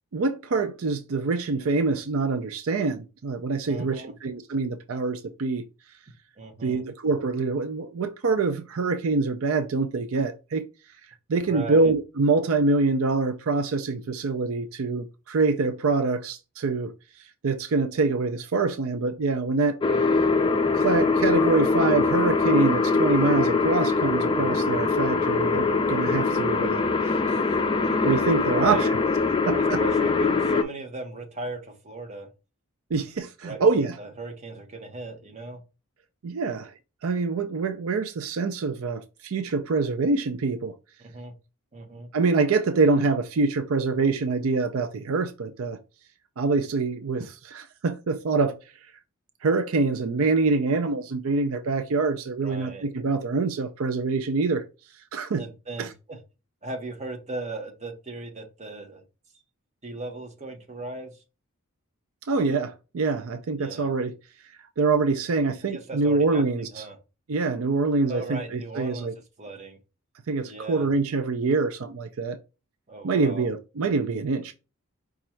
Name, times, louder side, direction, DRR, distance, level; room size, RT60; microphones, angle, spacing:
voice 1, 0.1-5.6 6.6-10.6 11.3-16.9 17.2-19.8 20.7-26.8 27.3-27.4 27.8-28.9 29.4-29.8 32.9-33.9 36.2-36.7 37.0-40.7 42.1-45.8 46.4-48.5 49.4-54.6 55.1-55.4 55.8-55.9 62.3-64.1 64.8-66.8 67.3-69.1 70.3-72.4 73.0-74.5, right 3 dB, 70° right, 0.5 m, -25 dB
voice 2, 3.7-4.2 6.4-6.8 11.5-11.9 19.9-20.1 28.5-28.9 29.6-32.3 33.4-35.6 41.0-41.3 41.7-42.1 52.4-52.9 55.3-56.2 56.6-59.0 59.8-61.2 63.6-63.9 65.7-67.0 68.1-69.1 69.4-69.8 70.4-70.9 72.9-73.5, right 2 dB, 30° right, 0.9 m, -37 dB
sound 1, 19.8-30.6, left 4 dB, 25° left, 0.4 m, -23 dB
5.1 x 2.4 x 4.3 m
head